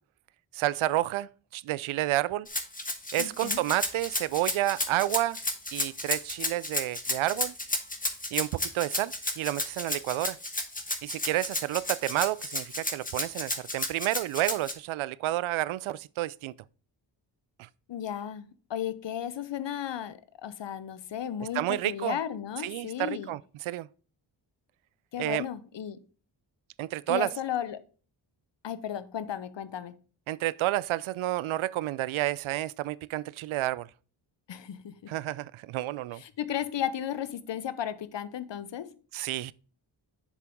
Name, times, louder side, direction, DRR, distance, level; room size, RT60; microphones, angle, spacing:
voice 1, 0.5-2.5 3.1-5.4 5.7-7.5 8.3-10.4 11.0-16.5 17.6-17.7 21.5-22.2 22.6-23.9 25.2-25.5 26.8-27.3 30.3-33.9 35.1-36.2 39.1-39.5, right 15 dB, 75° right, 0.5 m, -30 dB
Rattle (instrument), 2.5-14.7, left 2 dB, 15° left, 1.6 m, -32 dB
voice 2, 3.2-3.6 17.9-23.3 25.1-26.0 27.1-27.8 28.6-30.0 34.5-35.1 36.2-38.9, left 10 dB, 60° left, 0.9 m, -34 dB
7.3 x 6.8 x 3.6 m
cardioid pair, 50°, 49 cm